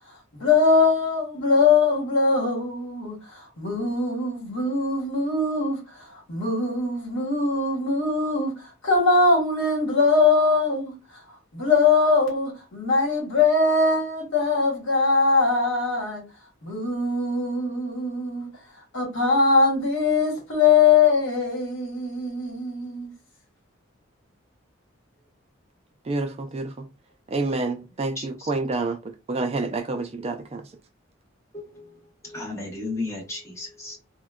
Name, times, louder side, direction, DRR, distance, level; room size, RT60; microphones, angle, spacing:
voice 1, 0.3-5.8 6.3-8.5 8.8-10.9 11.5-16.2 16.6-18.5 18.9-23.1, left 4 dB, 65° left, 1.2 m, -21 dB
voice 2, 26.1-26.9 27.3-30.7, right 3 dB, 30° right, 0.3 m, -28 dB
voice 3, 28.2-28.5 31.5-32.0 32.2-34.0, left 2 dB, 15° left, 0.9 m, -34 dB
3.6 x 2.1 x 2.2 m
head